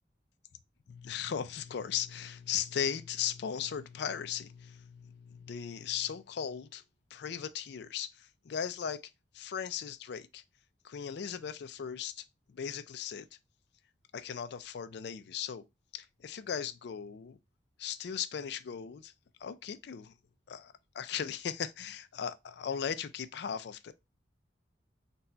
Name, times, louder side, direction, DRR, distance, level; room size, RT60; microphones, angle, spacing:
voice 1, 0.9-6.8 7.1-9.0 9.3-10.4 10.8-12.2 12.5-13.3 14.1-15.6 15.9-17.4 17.8-19.1 19.4-20.1 20.5-23.9, left 8 dB, 65° left, 0.4 m, -37 dB
4.0 x 2.3 x 4.2 m
head